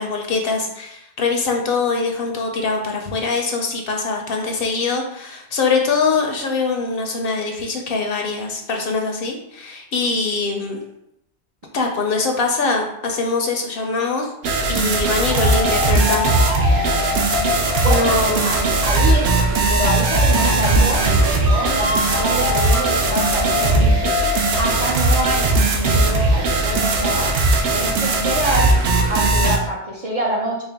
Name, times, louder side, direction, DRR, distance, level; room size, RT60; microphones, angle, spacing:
voice 1, 0.0-10.8 11.7-14.3 14.7-16.2 17.9-18.5, left 4 dB, 65° left, 2 dB, 0.7 m, -23 dB
sound 1, 14.4-29.6, right 2 dB, 65° right, 0.8 m, -18 dB
sound 2, 15.3-24.7, left 4 dB, 85° right, 1.9 m, -27 dB
voice 2, 17.8-19.4 19.7-21.1 21.4-24.1 24.6-27.3 27.7-28.7 29.1-30.6, right 1 dB, 45° right, -4 dB, 0.5 m, -26 dB
4.4 x 2.1 x 3.4 m, 0.80 s
omnidirectional pair, 1.1 m